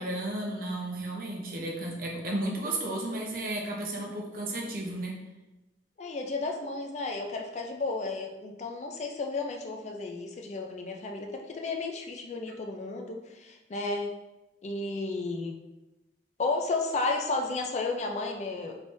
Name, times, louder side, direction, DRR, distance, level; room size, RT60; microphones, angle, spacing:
voice 1, 0.0-5.2, right 1 dB, 50° right, -1 dB, 0.6 m, -33 dB
voice 2, 6.0-14.1 14.6-15.6 16.4-18.8, left 3 dB, 40° left, 2 dB, 0.4 m, -33 dB
3.3 x 3.2 x 2.6 m, 1.0 s
head